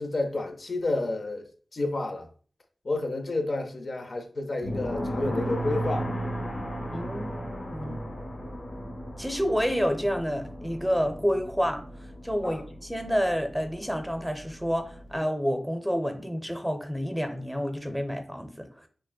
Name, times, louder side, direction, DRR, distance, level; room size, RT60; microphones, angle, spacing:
voice 1, 0.0-1.5 1.7-2.3 2.8-6.1 12.4-12.6, left 2 dB, 65° left, 0.6 m, -30 dB
sound 1, 4.6-15.2, equal, 90° left, 1.1 m, -35 dB
voice 2, 6.9-7.4 7.7-8.0 9.2-11.8 12.2-18.7, equal, ahead, 0.6 m, -29 dB
6.3 x 2.1 x 2.2 m
cardioid pair, 55°, 0 cm